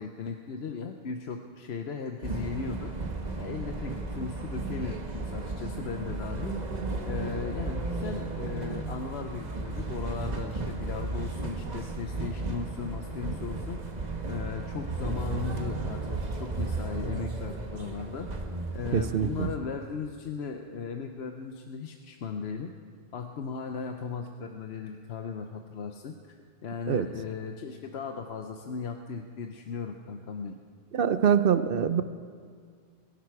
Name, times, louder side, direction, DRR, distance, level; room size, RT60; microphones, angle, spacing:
voice 1, 0.0-2.9 3.4-6.6 7.0-13.8 14.3-18.3 18.7-22.7 23.1-30.6, left 5 dB, 75° left, 5 dB, 1.0 m, -37 dB
sound 1, 2.2-19.6, right 3 dB, 40° right, 1.3 m, -34 dB
voice 2, 18.9-19.5 26.9-27.1 30.9-32.0, right 8 dB, 60° right, 12 dB, 0.8 m, -24 dB
22.0 x 11.5 x 4.7 m, 2.1 s
omnidirectional pair, 1.1 m